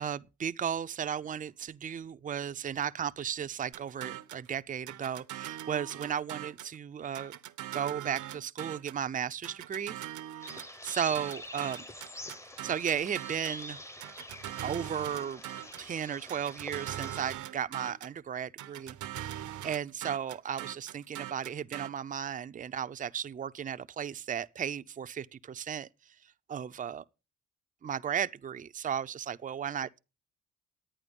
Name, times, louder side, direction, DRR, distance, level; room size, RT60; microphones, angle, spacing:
voice 1, 0.0-7.3 7.7-9.9 10.4-11.9 12.6-13.8 14.6-15.4 15.8-25.9 26.5-27.0 27.8-30.0, right 8 dB, 25° right, 0.5 m, -35 dB
sound 1, 3.7-4.5 4.9-6.8 7.1-9.0 9.4-13.6 14.0-15.9 16.3-18.2 18.6-21.9, right 13 dB, 75° right, 0.9 m, -41 dB
sound 2, 10.4-17.3, left 1 dB, 10° left, 0.8 m, -46 dB
11.0 x 8.9 x 5.3 m
cardioid pair, 90°, 30 cm